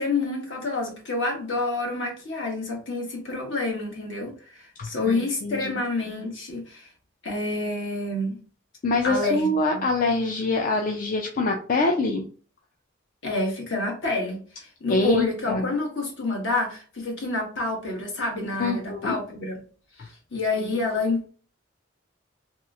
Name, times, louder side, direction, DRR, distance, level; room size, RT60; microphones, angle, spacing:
voice 1, 0.0-6.9 7.2-8.4 9.0-9.8 13.2-19.6 20.0-21.3, left 2 dB, 70° left, 0 dB, 1.2 m, -28 dB
voice 2, 4.8-5.8 8.8-12.3 14.9-15.7 18.6-19.2 20.0-20.1 20.6-20.8, left 2 dB, 45° left, 2 dB, 0.4 m, -25 dB
3.1 x 2.9 x 2.4 m, 0.41 s
head